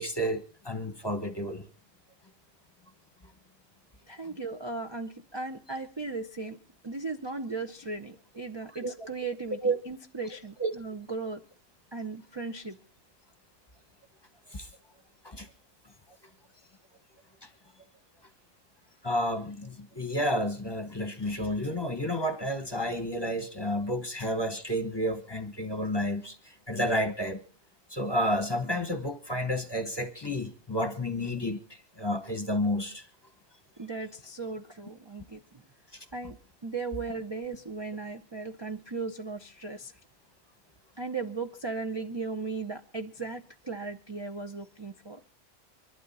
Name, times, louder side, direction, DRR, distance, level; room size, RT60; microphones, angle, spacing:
voice 1, 0.0-1.6 8.8-9.1 9.6-9.8 10.6-10.7 14.5-14.7 15.2-15.5 17.4-17.5 19.0-27.4 27.9-33.1 35.9-36.1, equal, 20° left, 1.1 m, -31 dB
voice 2, 4.1-6.6 6.8-11.4 11.9-12.8 33.8-35.7 36.1-36.4 36.6-39.9 41.0-45.2, right 4 dB, 25° right, 0.6 m, -37 dB
24.0 x 12.0 x 4.1 m
omnidirectional pair, 1.4 m